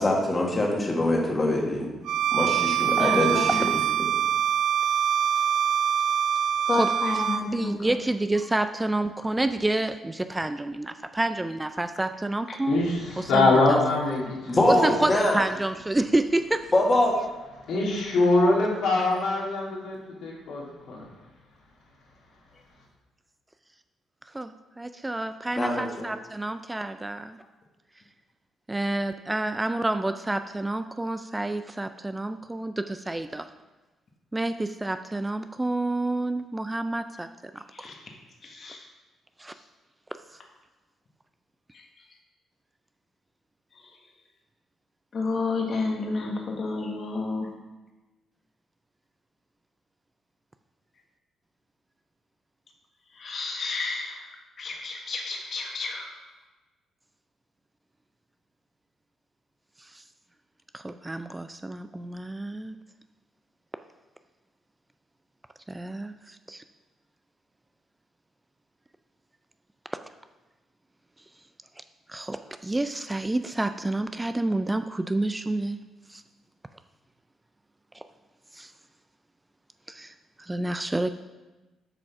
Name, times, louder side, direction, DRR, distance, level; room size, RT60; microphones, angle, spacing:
voice 1, 0.0-1.9 2.3-3.5 14.5-15.4 16.7-17.2 25.6-26.1, left 1 dB, 25° left, -1 dB, 1.8 m, -23 dB
Bowed string instrument, 2.1-7.5, right 9 dB, 80° right, 0.4 m, -24 dB
voice 2, 3.0-3.7 6.7-7.9 12.5-12.6 37.7-38.0 38.4-38.8 41.7-41.8 43.7-43.9 45.1-47.5 53.1-54.3 54.6-56.1, left 3 dB, 45° left, 1 dB, 1.4 m, -31 dB
voice 3, 7.4-12.8 13.2-13.8 14.7-16.7 24.3-24.5 24.8-27.4 28.7-33.5 34.3-37.3 37.5-37.9 39.4-39.5 59.8-60.0 60.7-62.8 65.7-66.6 72.1-75.8 76.1-76.2 77.9-78.0 78.5-78.7 79.9-81.1, right 2 dB, 15° right, 9 dB, 0.3 m, -29 dB
voice 4, 12.7-14.9 17.7-21.0, left 2 dB, 80° left, -4 dB, 2.5 m, -24 dB
7.5 x 5.2 x 5.9 m, 1.1 s
cardioid pair, 90°, 0 cm